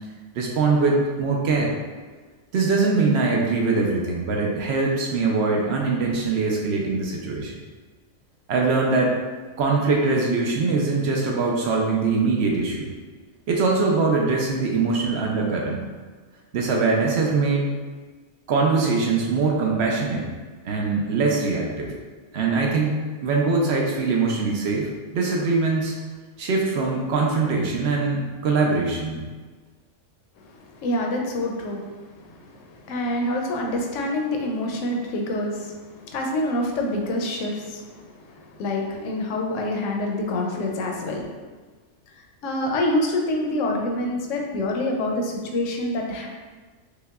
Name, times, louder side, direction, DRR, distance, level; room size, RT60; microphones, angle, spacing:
voice 1, 0.3-1.7 2.5-7.5 8.5-9.1 9.6-12.9 13.5-15.8 16.5-17.7 18.5-20.3 20.6-22.0 22.3-26.0 26.4-29.2, right 3 dB, 65° right, -1 dB, 0.8 m, -22 dB
voice 2, 30.4-41.4 42.4-46.3, left 1 dB, 80° left, 0 dB, 0.9 m, -27 dB
5.1 x 2.2 x 2.3 m, 1.4 s
omnidirectional pair, 1.3 m